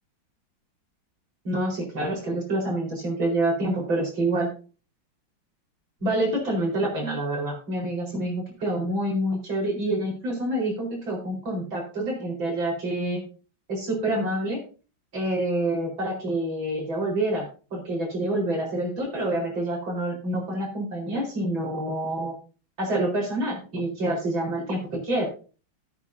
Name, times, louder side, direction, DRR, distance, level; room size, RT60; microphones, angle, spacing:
voice 1, 1.4-4.5 6.0-13.2 13.7-14.6 15.1-22.3 22.8-25.3, right 1 dB, 65° right, -1 dB, 5.1 m, -27 dB
16.5 x 8.7 x 2.7 m, 0.36 s
omnidirectional pair, 2.3 m